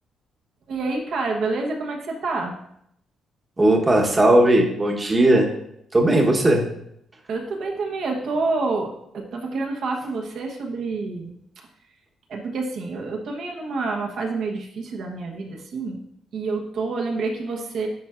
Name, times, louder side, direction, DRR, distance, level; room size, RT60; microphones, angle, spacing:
voice 1, 0.7-2.5 7.3-11.3 12.3-16.0 16.3-17.9, right 3 dB, 70° right, 1 dB, 1.0 m, -28 dB
voice 2, 3.6-5.5 5.9-6.6, right 1 dB, 25° right, 1 dB, 1.0 m, -17 dB
9.9 x 4.3 x 2.5 m, 0.75 s
cardioid pair, 90°, 0 cm